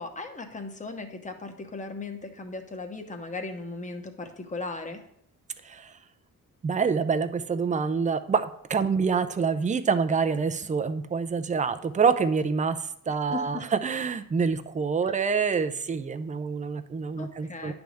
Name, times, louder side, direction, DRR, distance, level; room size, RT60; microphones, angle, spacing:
voice 1, 0.0-5.0 13.3-13.7 17.2-17.7, left 3 dB, 20° left, 5 dB, 1.0 m, -37 dB
voice 2, 6.6-12.8 13.1-17.7, right 5 dB, 20° right, 9 dB, 0.5 m, -26 dB
10.0 x 3.5 x 6.3 m, 0.72 s
cardioid pair, 120°, 34 cm